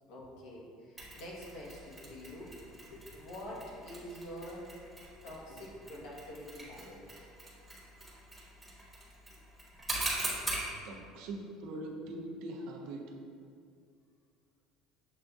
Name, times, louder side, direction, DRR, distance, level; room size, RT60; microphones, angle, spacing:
voice 1, 0.0-4.7 5.2-7.0 11.1-11.2, equal, 70° left, -4 dB, 1.1 m, -46 dB
Mechanisms, 1.0-10.7, right 2 dB, ahead, 1.2 m, -42 dB
voice 2, 10.8-13.0, right 2 dB, 65° right, 1 dB, 0.6 m, -42 dB
7.2 x 2.5 x 2.3 m, 2.4 s
cardioid pair, 155°, 0 cm